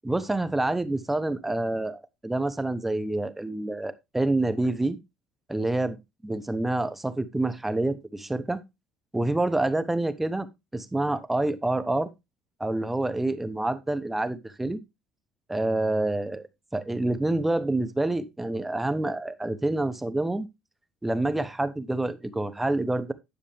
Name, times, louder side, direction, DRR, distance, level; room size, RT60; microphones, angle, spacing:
voice 1, 0.0-5.0 5.5-6.0 6.2-8.6 9.1-10.5 10.7-12.1 12.6-14.8 15.5-16.5 16.7-20.5 21.0-23.1, right 2 dB, 10° right, 0.9 m, -27 dB
10.0 x 6.8 x 3.3 m
cardioid pair, 125°, 2 cm